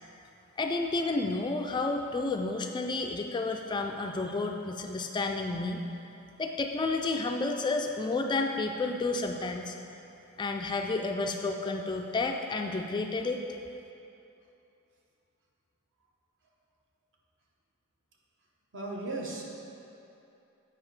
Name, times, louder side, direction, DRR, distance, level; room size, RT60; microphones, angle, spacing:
voice 1, 0.6-5.8 6.4-9.8 10.4-13.4, left 3 dB, 20° left, 3 dB, 0.3 m, -31 dB
voice 2, 18.7-19.4, right 2 dB, 60° right, -2 dB, 1.1 m, -36 dB
8.5 x 5.1 x 4.7 m, 2.8 s
head